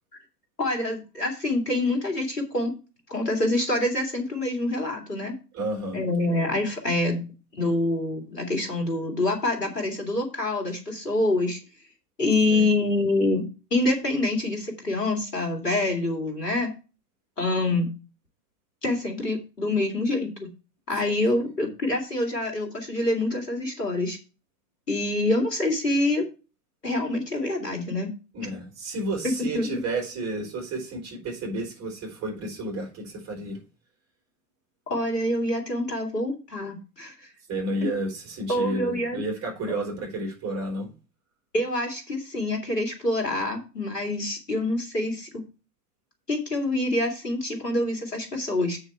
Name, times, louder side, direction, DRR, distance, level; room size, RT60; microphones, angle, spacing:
voice 1, 0.6-2.7 3.1-5.3 5.9-7.2 7.5-11.6 12.2-16.7 17.4-17.9 18.8-20.5 20.9-24.2 24.9-26.3 26.8-28.1 29.2-29.8 34.9-37.1 38.5-39.2 41.5-45.4 46.3-48.8, left 2 dB, 80° left, 3.2 m, -26 dB
voice 2, 5.5-6.0 12.5-12.7 21.1-21.5 28.3-33.6 37.5-40.9, right 1 dB, 30° right, 4.5 m, -31 dB
8.1 x 6.4 x 4.7 m
figure-of-eight pair, 85°, 47 cm